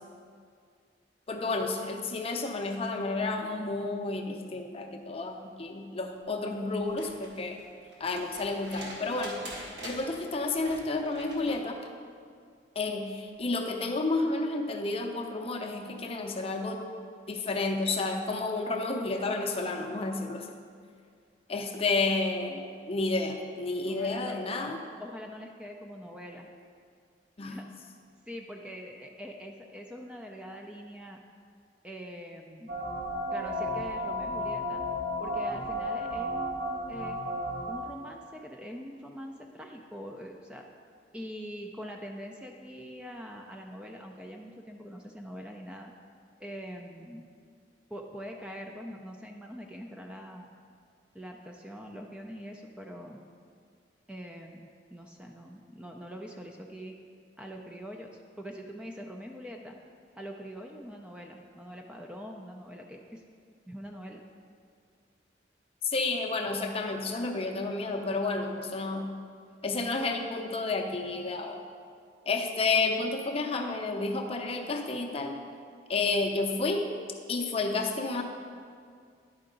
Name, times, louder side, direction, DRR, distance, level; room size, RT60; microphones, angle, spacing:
voice 1, 1.3-7.6 8.0-9.4 9.8-11.8 12.8-16.8 17.3-20.5 21.5-24.8 27.4-27.6 65.8-69.1 69.6-71.6 72.3-75.4 75.9-76.8 77.3-78.2, left 3 dB, 35° left, 3 dB, 0.6 m, -31 dB
sound 1, 6.8-11.6 13.3-13.4, right 1 dB, 65° right, 1.7 m, -45 dB
voice 2, 23.9-24.4 25.0-26.5 27.4-27.7 28.3-31.2 31.8-32.8 33.3-34.8 35.2-37.2 37.7-40.6 41.1-45.9 46.4-47.3 47.9-50.5 51.1-53.2 54.1-57.0 57.4-59.8 60.2-63.2 63.7-64.2, equal, 5° right, 1 dB, 0.4 m, -43 dB
sound 2, 32.7-37.7, equal, 50° right, 1.5 m, -33 dB
10.5 x 4.6 x 3.8 m, 2.2 s
head